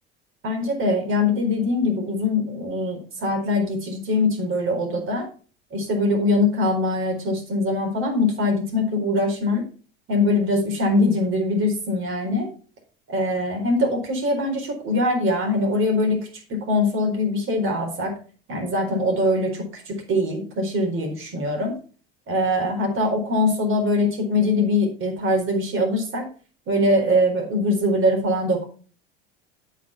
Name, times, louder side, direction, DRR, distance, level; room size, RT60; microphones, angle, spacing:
voice 1, 0.4-5.3 5.7-9.7 10.1-12.5 13.1-18.1 18.5-21.8 22.3-26.3 26.7-28.7, left 1 dB, 45° right, 2 dB, 4.3 m, -22 dB
8.1 x 5.9 x 5.7 m, 0.39 s
hypercardioid pair, 90°, 29 cm